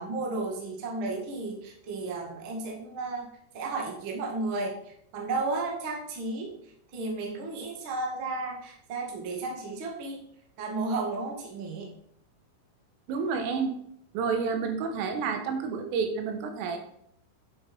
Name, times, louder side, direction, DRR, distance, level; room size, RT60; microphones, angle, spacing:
voice 1, 0.0-3.3 3.5-6.5 6.9-10.2 10.6-11.9, right 3 dB, 50° right, 0 dB, 1.5 m, -33 dB
voice 2, 13.1-13.8 14.2-16.8, right 5 dB, 90° right, 5 dB, 3.9 m, -29 dB
8.8 x 7.0 x 5.4 m, 0.70 s
omnidirectional pair, 5.6 m